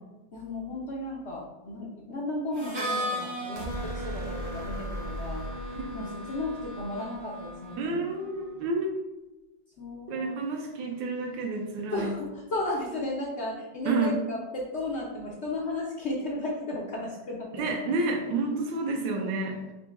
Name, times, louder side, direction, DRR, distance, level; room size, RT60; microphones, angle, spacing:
voice 1, 0.3-5.4 5.9-8.1 9.8-10.4 11.9-17.7, left 2 dB, 75° left, -4 dB, 0.6 m, -34 dB
Harmonica, 2.5-8.3, equal, 30° right, 0.9 m, -37 dB
sound 1, 3.6-7.8, right 1 dB, 65° right, 0.9 m, -39 dB
voice 2, 5.7-6.1 7.8-8.9 10.1-12.1 13.8-14.1 17.6-19.6, right 3 dB, 85° right, 1 dB, 1.4 m, -30 dB
4.8 x 2.2 x 4.0 m, 1.0 s
omnidirectional pair, 1.9 m